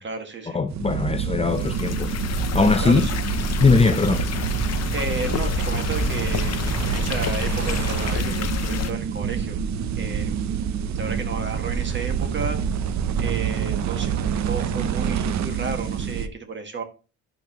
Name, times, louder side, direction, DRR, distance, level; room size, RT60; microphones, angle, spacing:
voice 1, 0.0-0.6 2.8-3.2 4.9-9.6 10.0-10.5 11.0-12.6 13.2-16.8, right 4 dB, 40° right, 2.0 m, -33 dB
voice 2, 0.5-3.0 3.6-4.5, left 4 dB, 20° left, 0.6 m, -21 dB
noise soft with cracks, 0.7-16.3, right 8 dB, 65° right, 0.8 m, -27 dB
sound 1, 1.5-8.9, left 8 dB, 55° left, 0.8 m, -29 dB
11.5 x 5.3 x 3.1 m
cardioid pair, 90°, 30 cm